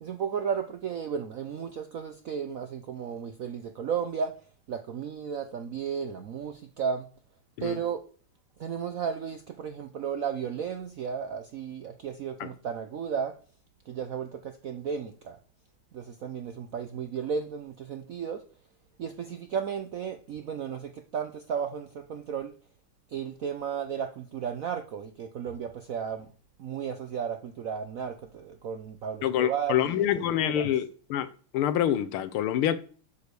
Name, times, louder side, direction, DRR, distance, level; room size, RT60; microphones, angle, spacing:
voice 1, 0.0-4.4 4.7-7.1 7.6-8.0 8.6-13.3 13.9-15.4 15.9-18.4 19.0-22.5 23.1-26.3 26.6-30.7, right 7 dB, 70° right, 0.8 m, -34 dB
voice 2, 29.2-31.3 31.5-32.8, left 11 dB, 85° left, 1.7 m, -26 dB
8.1 x 5.0 x 6.7 m
omnidirectional pair, 2.3 m